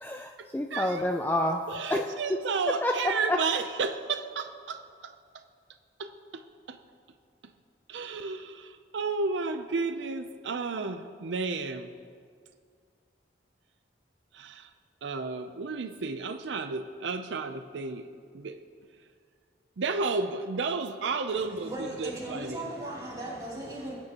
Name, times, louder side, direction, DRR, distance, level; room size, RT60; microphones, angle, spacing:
voice 1, 0.0-1.6 1.9-2.4 2.8-3.4, left 1 dB, 10° left, 4 dB, 0.3 m, -28 dB
voice 2, 0.7-1.0 1.7-5.1 6.0-6.4 6.7-6.8 7.9-11.9 14.3-14.7 15.0-18.0 18.3-18.6 19.8-22.6, right 4 dB, 90° right, 8 dB, 0.5 m, -32 dB
voice 3, 21.3-23.9, right 1 dB, 20° right, -8 dB, 3.2 m, -38 dB
20.5 x 9.1 x 2.9 m, 2.1 s
head